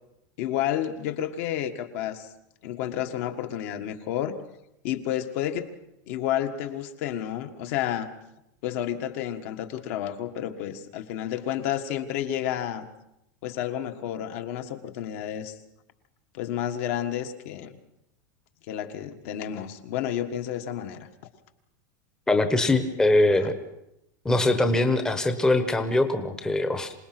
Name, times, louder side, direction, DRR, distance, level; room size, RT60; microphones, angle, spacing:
voice 1, 0.4-2.3 2.6-4.3 4.8-5.7 6.1-8.1 8.6-12.8 13.4-15.6 16.3-17.8 18.7-21.1, left 11 dB, 50° left, 6 dB, 1.7 m, -30 dB
voice 2, 22.3-23.6 24.2-26.9, left 2 dB, 5° left, 8 dB, 1.1 m, -22 dB
26.5 x 19.0 x 6.1 m, 0.84 s
supercardioid pair, 180°, 10 cm